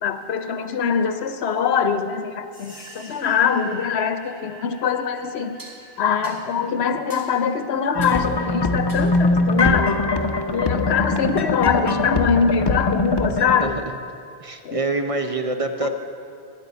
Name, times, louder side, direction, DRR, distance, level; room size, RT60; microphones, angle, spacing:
voice 1, 0.0-5.6 6.0-10.0 10.5-13.8 14.6-14.8 15.8-15.9, left 6 dB, 75° left, 9 dB, 0.9 m, -23 dB
sound 1, 2.5-10.8, right 1 dB, 85° right, 3.8 m, -48 dB
sound 2, 4.2-4.4 5.6-5.8 6.2-6.5 7.1-7.3 8.0-8.3 8.9-9.2, right 1 dB, 15° right, 2.1 m, -43 dB
sound 3, 7.9-13.6, left 2 dB, 30° left, 0.5 m, -22 dB
voice 2, 14.4-15.9, right 3 dB, 35° right, 6 dB, 0.6 m, -25 dB
9.9 x 9.2 x 8.1 m, 2.5 s
omnidirectional pair, 1.1 m